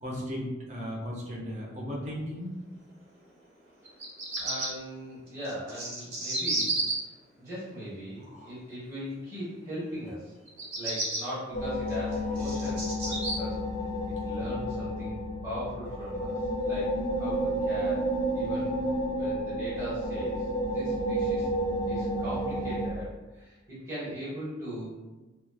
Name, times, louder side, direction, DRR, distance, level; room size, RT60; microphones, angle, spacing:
voice 1, 0.0-2.6 8.3-8.5, equal, 35° right, -3 dB, 0.5 m, -36 dB
Bird vocalization bird call bird song, 3.8-4.7 5.4-6.9 10.5-11.2 11.9-13.3, right 2 dB, 90° right, 0.9 m, -31 dB
voice 2, 4.4-6.7 7.4-10.3 10.8-13.6 14.1-18.7 19.2-21.5 21.8-24.9, equal, 15° right, -11 dB, 1.0 m, -39 dB
sound 1, 11.5-22.9, equal, 30° left, 0.4 m, -31 dB
3.0 x 2.0 x 2.2 m, 1.1 s
head